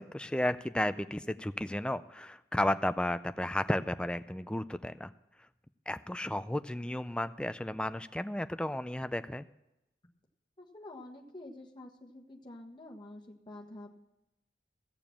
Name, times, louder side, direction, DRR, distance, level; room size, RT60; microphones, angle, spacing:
voice 1, 0.0-5.1 5.9-9.5, left 1 dB, 5° left, 12 dB, 0.3 m, -33 dB
voice 2, 10.6-13.9, left 1 dB, 25° left, -1 dB, 1.4 m, -48 dB
15.5 x 7.0 x 7.3 m, 0.91 s
head